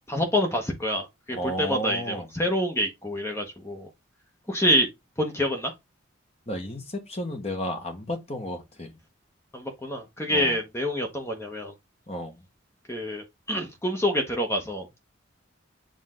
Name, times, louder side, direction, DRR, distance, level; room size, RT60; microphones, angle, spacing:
voice 1, 0.1-3.9 4.5-4.9 5.2-5.7 9.5-11.7 12.9-14.9, equal, 10° left, 1.1 m, -27 dB
voice 2, 1.3-2.3 6.5-9.0 10.3-10.6 12.1-12.4, equal, 30° left, 1.4 m, -33 dB
7.7 x 3.6 x 3.8 m
head